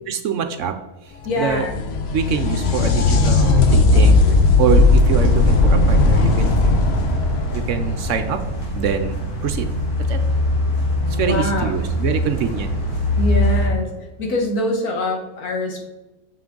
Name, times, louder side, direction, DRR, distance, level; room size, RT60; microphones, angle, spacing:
voice 1, 0.1-0.7 1.4-1.6 2.1-4.1 4.6-6.6 7.5-8.4 8.7-9.7 10.1-10.2 11.1-12.7, right 6 dB, 65° right, 8 dB, 0.9 m, -24 dB
sound 1, 1.2-8.8 12.2-12.3 13.4-13.5, left 3 dB, 55° left, 0.8 m, -16 dB
voice 2, 1.3-1.7 11.0-11.9 13.2-13.9 14.2-15.9, left 1 dB, 85° left, 2 dB, 1.8 m, -24 dB
sound 2, 4.0-13.6, left 1 dB, 35° left, 3.0 m, -24 dB
7.1 x 5.9 x 3.8 m, 1.1 s
omnidirectional pair, 1.5 m